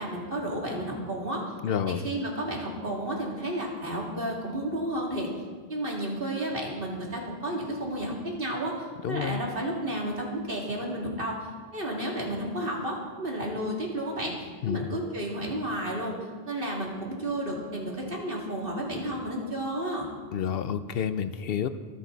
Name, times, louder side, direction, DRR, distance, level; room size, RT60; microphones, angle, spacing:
voice 1, 0.0-1.4 1.9-5.3 5.7-11.4 11.7-16.1 16.5-20.1, right 1 dB, 60° right, -2 dB, 2.8 m, -32 dB
voice 2, 1.6-2.1 9.0-9.4 14.6-14.8 20.3-21.7, left 8 dB, 70° left, 12 dB, 0.8 m, -29 dB
24.5 x 9.1 x 4.0 m, 1.5 s
omnidirectional pair, 1.1 m